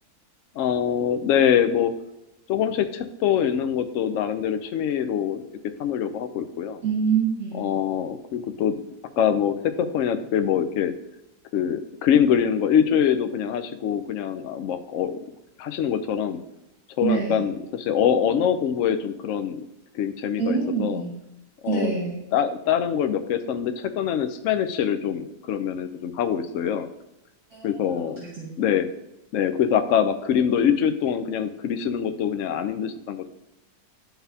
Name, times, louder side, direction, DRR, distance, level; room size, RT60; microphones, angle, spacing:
voice 1, 0.6-1.9 2.5-5.4 5.8-6.8 7.5-8.8 9.2-10.9 11.5-15.2 15.6-16.4 17.0-19.6 19.9-21.0 21.6-21.9 22.3-26.9 27.6-28.2 28.6-28.9 29.3-33.3, left 8 dB, 70° left, 9 dB, 0.8 m, -24 dB
voice 2, 6.8-7.6 17.0-17.5 20.4-21.1 21.7-22.2 27.5-28.5, right 6 dB, 70° right, -6 dB, 2.1 m, -26 dB
11.5 x 4.0 x 2.7 m, 0.90 s
omnidirectional pair, 1.7 m